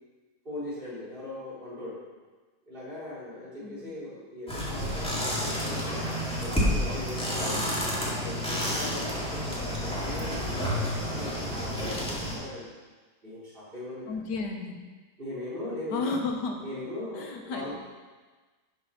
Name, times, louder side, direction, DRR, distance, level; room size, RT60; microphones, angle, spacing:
voice 1, 0.4-2.0 2.7-6.1 6.4-7.6 7.9-12.7 13.2-14.1 15.2-16.1 16.6-17.7, left 1 dB, 30° right, -9 dB, 3.6 m, -39 dB
voice 2, 3.6-3.9 7.5-7.6 14.1-14.8 15.9-16.6 17.1-17.8, left 4 dB, 85° left, 2 dB, 1.7 m, -33 dB
sound 1, 4.5-12.4, equal, 5° left, 1.9 m, -30 dB
10.5 x 5.6 x 5.5 m, 1.3 s
omnidirectional pair, 1.8 m